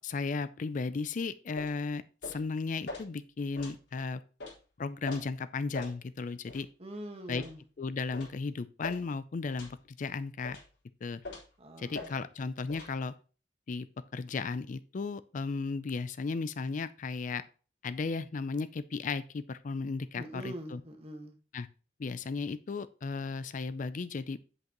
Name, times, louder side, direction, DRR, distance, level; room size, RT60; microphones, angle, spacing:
voice 1, 0.0-4.2 4.8-6.7 7.3-7.4 7.8-10.6 11.0-11.2 11.8-13.1 13.7-17.4 17.8-20.8 21.5-21.7 22.0-24.4, left 4 dB, 45° left, 15 dB, 0.4 m, -35 dB
sound 1, 1.6-1.8 2.2-2.4 2.9-3.0 3.5-3.8 4.4-4.5 5.0-5.2 5.7-5.9 6.5-6.6 7.3-7.5 8.1-8.3 8.8-9.0 9.6-9.8 10.4-10.7 11.2-11.5 11.9-12.1 12.7-12.9, left 2 dB, 85° left, 4.3 m, -42 dB
voice 2, 6.8-7.6 11.6-12.1 20.2-21.4, right 1 dB, 35° right, 4 dB, 1.5 m, -43 dB
8.1 x 7.8 x 3.0 m, 0.37 s
head